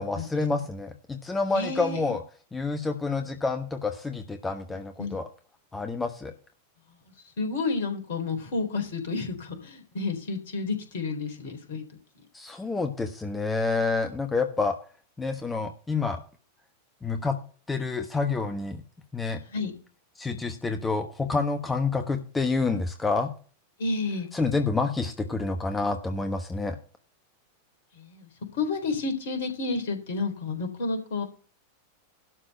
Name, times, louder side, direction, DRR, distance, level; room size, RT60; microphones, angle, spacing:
voice 1, 0.0-2.2 2.5-5.3 5.7-6.3 12.3-14.8 15.2-16.2 17.0-17.4 17.7-18.8 19.1-19.4 20.2-23.3 24.3-26.8, left 3 dB, 10° left, 6 dB, 1.2 m, -28 dB
voice 2, 1.5-2.1 5.0-5.2 7.4-11.8 19.5-19.7 23.8-24.3 27.9-31.2, left 3 dB, 55° left, 5 dB, 3.7 m, -30 dB
12.0 x 4.2 x 7.9 m, 0.38 s
figure-of-eight pair, 90°, 0 cm